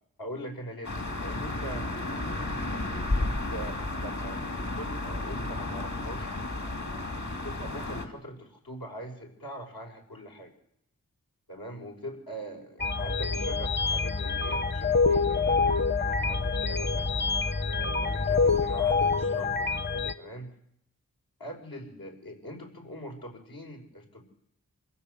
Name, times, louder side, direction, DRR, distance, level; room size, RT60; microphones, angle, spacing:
voice 1, 0.2-1.9 2.7-6.4 7.4-10.5 11.5-17.1 17.5-19.7 20.2-20.5 21.4-24.2, equal, 85° left, 1 dB, 5.9 m, -42 dB
sound 1, 0.8-8.1, left 2 dB, 55° left, 3.2 m, -32 dB
sound 2, 12.8-20.1, left 4 dB, 30° left, 1.0 m, -26 dB
26.0 x 16.0 x 8.3 m, 0.73 s
wide cardioid pair, 60°, 34 cm